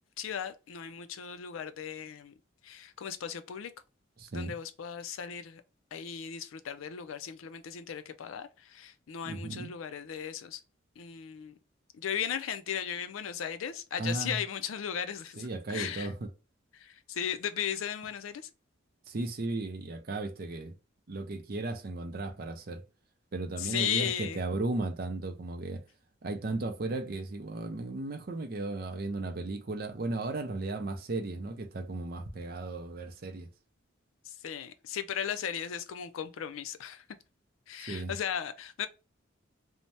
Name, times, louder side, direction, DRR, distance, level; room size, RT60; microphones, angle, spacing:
voice 1, 0.2-2.3 2.6-3.7 4.3-5.6 5.9-10.6 11.0-11.6 11.9-16.1 16.7-18.5 23.6-24.4 34.3-37.0 37.7-38.9, left 8 dB, 90° left, 0.4 m, -36 dB
voice 2, 4.2-4.6 9.3-9.7 14.0-14.4 15.4-16.3 19.1-20.8 21.1-22.8 23.3-25.8 26.2-33.5 37.8-38.2, right 2 dB, 45° right, 0.5 m, -35 dB
2.7 x 2.1 x 3.2 m
head